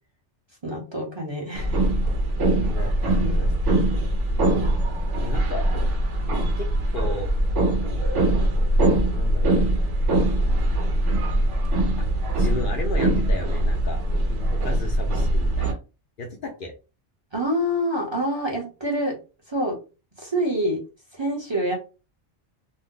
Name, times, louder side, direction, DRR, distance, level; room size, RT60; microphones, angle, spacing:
voice 1, 0.6-1.8 3.2-3.8 17.3-19.1 19.5-19.8 20.2-20.8 21.1-21.8, equal, 25° right, -2 dB, 0.7 m, -26 dB
sound 1, 1.5-15.7, right 1 dB, 90° right, 1.1 m, -22 dB
voice 2, 2.6-3.6 5.2-5.7 6.6-7.3 9.1-9.6 12.0-12.1 12.4-14.0 14.3-15.8 16.2-16.7, left 3 dB, 55° left, 2 dB, 0.7 m, -34 dB
2.7 x 2.1 x 3.7 m, 0.31 s
omnidirectional pair, 1.2 m